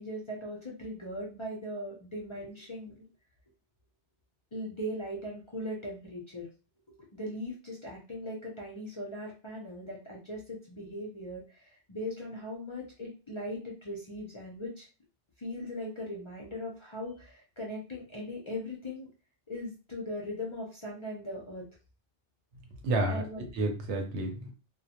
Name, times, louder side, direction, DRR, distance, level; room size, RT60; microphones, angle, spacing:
voice 1, 0.0-3.1 4.5-6.5 7.1-14.9 15.4-19.1 19.5-21.7 23.1-23.4, left 1 dB, 45° left, -3 dB, 0.3 m, -39 dB
voice 2, 22.8-24.5, right 2 dB, 80° right, 3 dB, 0.9 m, -31 dB
2.2 x 2.1 x 2.8 m, 0.34 s
omnidirectional pair, 1.2 m